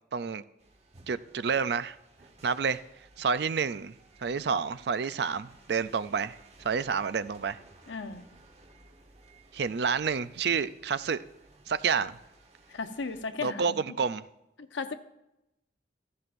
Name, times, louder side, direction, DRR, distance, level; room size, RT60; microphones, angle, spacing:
voice 1, 0.1-0.4 1.1-2.0 2.4-2.8 3.2-3.9 4.2-6.3 6.6-7.6 9.5-11.2 11.7-12.2 13.4-14.2, right 6 dB, 60° right, 0.4 m, -29 dB
sound 1, 0.6-13.3, right 2 dB, 35° right, 1.2 m, -57 dB
voice 2, 7.9-8.3 12.7-13.8 14.6-14.9, left 4 dB, 80° left, 0.8 m, -36 dB
15.0 x 14.5 x 2.6 m
head